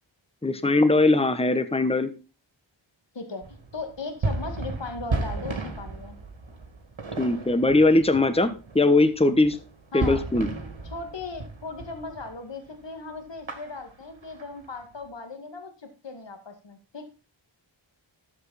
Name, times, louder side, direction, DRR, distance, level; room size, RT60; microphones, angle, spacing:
voice 1, 0.4-2.1 7.2-9.6 9.9-10.5, left 2 dB, 10° left, 11 dB, 1.1 m, -20 dB
voice 2, 3.1-6.2 9.9-10.2 10.8-17.1, left 3 dB, 65° left, 6 dB, 2.1 m, -38 dB
sound 1, 3.4-12.3 12.6-12.8 13.1-15.0, right 3 dB, 75° right, 2.6 m, -35 dB
13.0 x 7.5 x 4.2 m, 0.32 s
wide cardioid pair, 60°, 47 cm